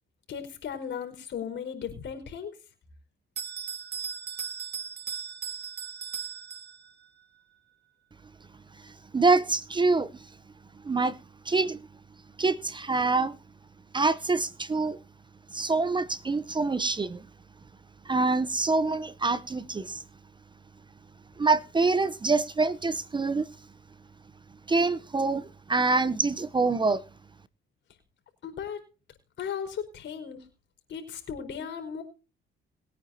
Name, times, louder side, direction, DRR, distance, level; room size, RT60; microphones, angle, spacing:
voice 1, 0.3-2.5 28.4-28.8 29.4-30.4 30.9-32.0, left 7 dB, 65° left, 4.7 m, -36 dB
Bell, 3.4-7.1, right 7 dB, 55° right, 2.1 m, -37 dB
voice 2, 8.8-10.1 10.8-11.1 11.5-11.8 12.4-13.4 13.9-15.0 15.5-17.2 18.1-20.0 21.4-23.5 24.7-27.0, right 3 dB, 25° right, 0.7 m, -25 dB
21.5 x 9.4 x 2.8 m
cardioid pair, 90°, 20 cm